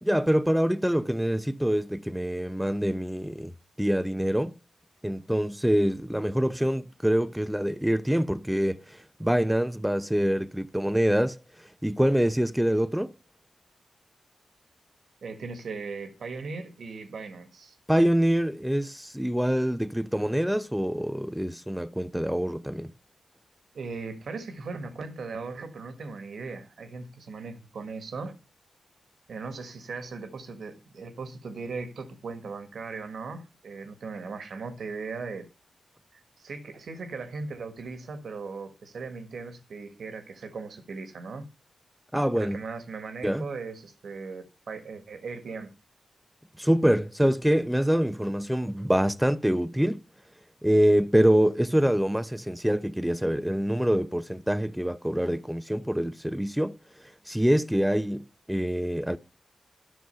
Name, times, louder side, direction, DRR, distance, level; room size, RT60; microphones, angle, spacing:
voice 1, 0.0-3.5 3.8-4.6 5.0-11.4 11.8-13.1 17.9-22.9 42.1-42.6 43.2-43.5 46.6-50.0 50.6-56.8 57.3-59.2, equal, 5° right, 0.8 m, -25 dB
voice 2, 15.2-17.7 23.7-28.4 29.3-35.5 36.1-41.5 42.3-45.7, right 4 dB, 75° right, 1.6 m, -38 dB
11.5 x 6.2 x 5.6 m
cardioid pair, 45°, 0 cm